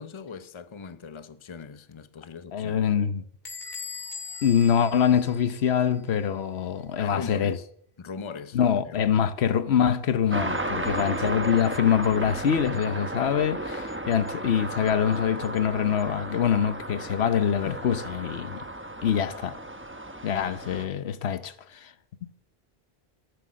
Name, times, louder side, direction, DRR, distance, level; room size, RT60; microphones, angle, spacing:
voice 1, 0.0-2.9 7.0-7.7 8.0-8.6 8.9-9.3, left 5 dB, 30° left, 0.8 m, -40 dB
voice 2, 2.5-3.2 4.4-7.6 8.5-18.6 19.0-19.6 20.2-21.9, left 8 dB, 80° left, 1.1 m, -24 dB
Bell / Squeak, 3.4-6.0, left 4 dB, 45° left, 1.7 m, -40 dB
sound 1, 10.3-20.9, right 1 dB, 10° right, 1.0 m, -34 dB
14.0 x 12.0 x 6.3 m
omnidirectional pair, 1.1 m